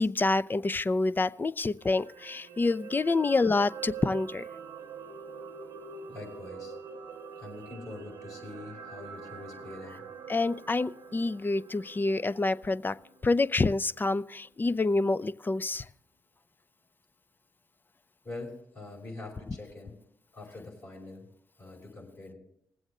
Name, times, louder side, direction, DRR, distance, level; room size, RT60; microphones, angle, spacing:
voice 1, 0.0-4.5 10.3-13.0 13.2-15.9, left 3 dB, 30° left, 16 dB, 0.5 m, -27 dB
sound 1, 1.8-14.1 14.4-14.6, right 6 dB, 80° right, 1.0 m, -45 dB
voice 2, 6.1-6.8 7.4-10.0 18.2-20.0 20.3-21.3 21.6-22.4, left 2 dB, 50° left, -2 dB, 5.2 m, -44 dB
20.0 x 7.8 x 3.7 m, 0.72 s
supercardioid pair, 45°, 7 cm